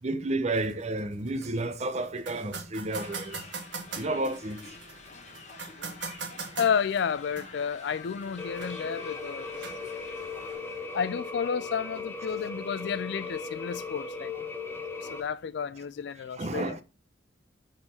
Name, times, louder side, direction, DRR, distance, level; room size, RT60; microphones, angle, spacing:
voice 1, 0.0-3.4 3.9-4.7 10.9-11.0 16.4-16.8, right 2 dB, 35° right, 0.6 m, -31 dB
sound 1, 0.5-10.5, right 4 dB, 70° right, 1.2 m, -43 dB
sound 2, 2.9-11.3, left 4 dB, 40° left, 1.2 m, -48 dB
voice 2, 6.6-9.5 10.9-14.3 15.1-16.8, left 7 dB, 65° left, 0.4 m, -31 dB
sound 3, 8.4-15.2, left 4 dB, 10° left, 0.7 m, -38 dB
6.4 x 4.0 x 4.3 m
head